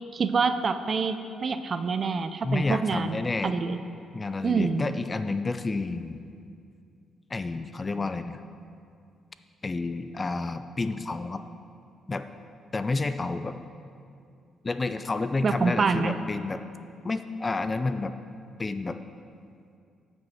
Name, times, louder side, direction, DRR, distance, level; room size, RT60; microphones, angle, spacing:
voice 1, 0.1-3.2 3.4-3.8 4.4-4.8 15.4-16.1, right 5 dB, 45° right, 10 dB, 0.5 m, -26 dB
voice 2, 2.4-3.6 4.1-6.3 7.3-8.4 9.6-11.4 12.1-12.2 12.7-13.6 14.6-16.6 17.0-18.1 18.6-19.0, left 3 dB, 25° left, 10 dB, 0.4 m, -30 dB
9.0 x 5.4 x 5.7 m, 2.4 s
cardioid pair, 90°, 0 cm